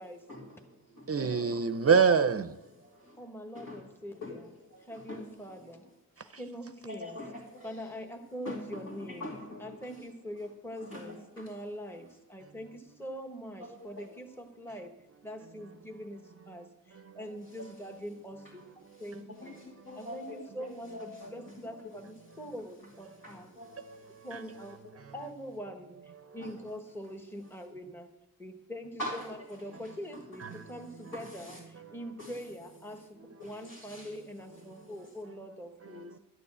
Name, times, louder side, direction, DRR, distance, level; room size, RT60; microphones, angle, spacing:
voice 1, 0.3-1.5 2.8-3.2 3.5-3.9 4.1-4.4 4.7-5.8 6.9-7.9 8.4-10.1 10.8-11.5 11.9-12.1 13.6-14.1 17.4-17.7 18.9-21.9 22.3-22.5 23.2-24.3 24.8-25.0 26.4-26.6 29.0-29.3 29.7-30.2 30.5-30.8 31.1-31.6 32.2-32.4 32.9-33.0 33.4-34.2 34.5-35.0, left 1 dB, 60° left, 2.6 m, -45 dB
voice 2, 1.1-2.6 17.1-17.2 24.3-24.4 30.4-30.6 36.1-36.2, right 6 dB, 40° right, 0.6 m, -25 dB
voice 3, 3.2-4.5 4.8-5.8 6.4-7.2 7.6-9.3 9.6-14.9 15.2-18.7 19.0-19.6 20.0-23.5 24.2-24.8 25.1-28.1 28.4-36.2, equal, 5° left, 1.1 m, -43 dB
12.5 x 6.9 x 8.7 m
wide cardioid pair, 110°, 36 cm